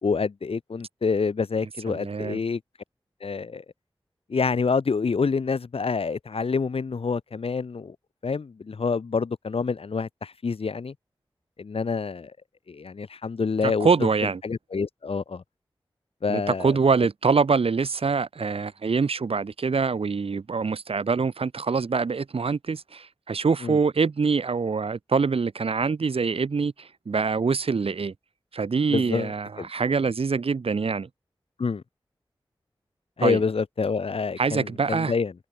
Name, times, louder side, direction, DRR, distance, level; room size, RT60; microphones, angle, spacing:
voice 1, 0.0-2.6 3.2-3.6 4.3-7.9 8.2-10.9 11.6-12.3 12.7-14.1 14.4-15.4 16.2-16.8 23.6-23.8 28.9-29.7 31.6-31.8 33.2-35.3, left 5 dB, 85° left, 3.4 m, -27 dB
voice 2, 1.9-2.4 13.8-14.4 16.3-28.1 28.5-31.1 33.2-33.4 34.4-35.1, right 5 dB, 80° right, 2.5 m, -24 dB
cardioid pair, 45°, 10 cm